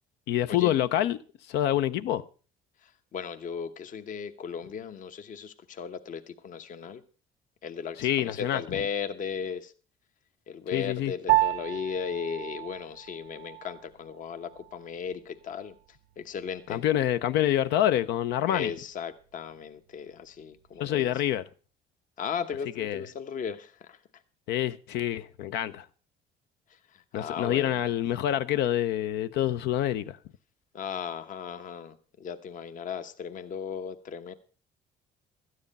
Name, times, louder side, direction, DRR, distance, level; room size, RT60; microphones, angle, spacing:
voice 1, 0.3-1.2 1.5-2.2 8.0-8.6 10.7-11.1 16.7-18.7 20.8-21.4 22.8-23.0 24.5-25.8 27.1-30.2, left 12 dB, 85° left, 0.7 m, -26 dB
voice 2, 2.8-7.0 7.6-9.7 10.5-15.7 16.2-16.8 18.5-21.2 22.2-24.0 26.7-27.9 30.7-34.3, left 7 dB, 50° left, 1.0 m, -36 dB
Piano, 11.3-20.9, right 17 dB, 85° right, 0.6 m, -34 dB
13.0 x 9.6 x 5.3 m
cardioid pair, 110°, 17 cm